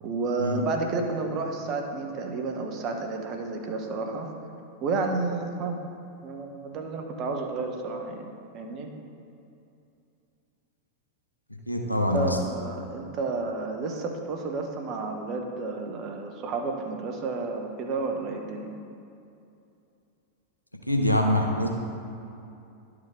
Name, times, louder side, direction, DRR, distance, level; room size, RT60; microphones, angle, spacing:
voice 1, 0.0-4.3 4.8-5.8 6.2-8.3 8.5-8.9 11.9-18.7, right 3 dB, 35° right, 3 dB, 0.9 m, -31 dB
voice 2, 11.7-12.4 20.9-21.7, left 1 dB, 85° left, 2 dB, 0.8 m, -24 dB
11.0 x 4.8 x 3.7 m, 2.6 s
figure-of-eight pair, 90°, 0 cm